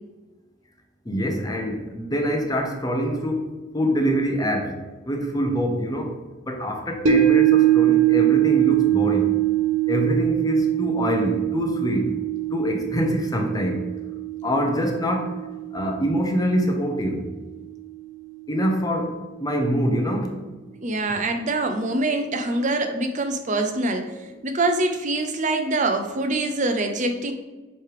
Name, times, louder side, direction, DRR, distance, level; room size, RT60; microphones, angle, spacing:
voice 1, 1.1-4.8 5.1-6.2 6.5-9.3 9.9-12.2 12.5-13.9 14.4-15.4 15.7-17.2 18.5-20.4, equal, 20° left, 3 dB, 0.8 m, -25 dB
sound 1, 7.1-17.4 17.8-17.9, right 13 dB, 75° right, 0.7 m, -23 dB
voice 2, 20.8-27.3, right 2 dB, 40° right, 5 dB, 0.7 m, -24 dB
7.8 x 3.4 x 4.9 m, 1.2 s
head